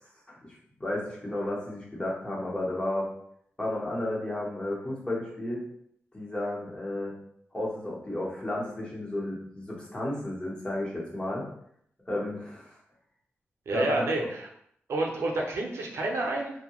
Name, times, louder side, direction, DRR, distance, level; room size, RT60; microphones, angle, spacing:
voice 1, 0.8-3.1 3.6-5.6 6.1-7.1 7.5-11.5 12.1-12.8 13.7-14.1, left 1 dB, 20° left, -4 dB, 0.9 m, -32 dB
voice 2, 13.7-14.5 14.9-16.5, right 2 dB, 90° right, 0 dB, 0.5 m, -29 dB
2.6 x 2.1 x 3.0 m, 0.69 s
wide cardioid pair, 110°, 4 cm